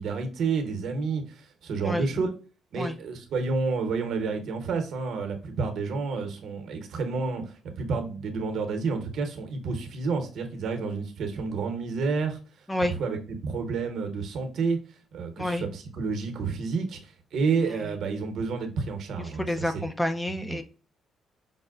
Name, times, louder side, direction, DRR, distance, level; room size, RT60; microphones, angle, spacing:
voice 1, 0.0-2.3 2.7-7.4 7.8-12.4 13.0-13.2 13.4-14.8 15.1-19.6 20.3-20.6, right 4 dB, 70° right, 0.9 m, -30 dB
voice 2, 17.6-17.9 19.4-20.6, left 1 dB, 10° left, 0.4 m, -29 dB
5.4 x 2.1 x 2.4 m
cardioid pair, 90°, 0 cm